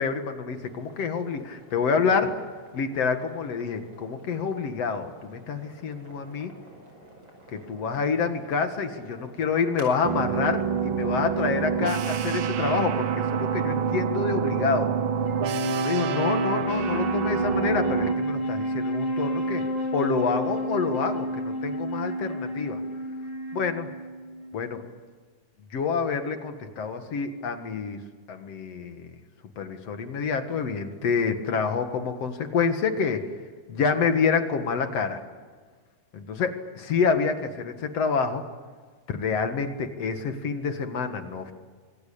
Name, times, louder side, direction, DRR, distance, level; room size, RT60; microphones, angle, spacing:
voice 1, 0.0-2.3 2.7-6.5 7.5-14.9 15.8-19.6 19.9-22.8 23.5-23.9 24.5-24.8 25.7-28.0 28.3-29.1 29.6-33.2 33.7-35.2 36.1-38.4 39.1-41.5, left 5 dB, 55° left, 7 dB, 2.5 m, -27 dB
sound 1, 0.6-14.1, right 1 dB, 35° right, 6.1 m, -50 dB
sound 2, 10.0-18.1, right 8 dB, 70° right, 1.2 m, -27 dB
Wind instrument woodwind instrument, 15.3-24.8, equal, 35° left, 6.8 m, -30 dB
26.0 x 23.0 x 8.6 m, 1.5 s
omnidirectional pair, 3.8 m